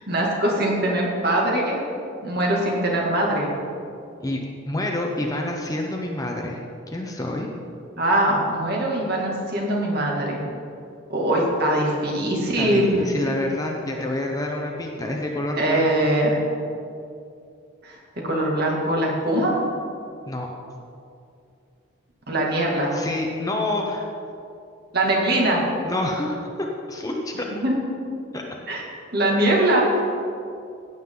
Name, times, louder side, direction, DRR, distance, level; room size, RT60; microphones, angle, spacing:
voice 1, 0.1-1.8 2.2-3.5 8.0-10.4 11.1-13.0 15.6-16.4 17.8-18.0 18.2-19.5 22.3-23.0 24.9-25.6 27.6-27.7 28.7-28.8 29.1-29.9, right 1 dB, 50° right, -2 dB, 2.3 m, -22 dB
voice 2, 4.7-6.6 6.9-7.5 12.6-15.9 20.3-20.5 22.9-24.1 25.8-27.5 28.3-28.4, left 1 dB, 15° left, 0 dB, 0.9 m, -28 dB
15.5 x 9.2 x 3.9 m, 2.5 s
head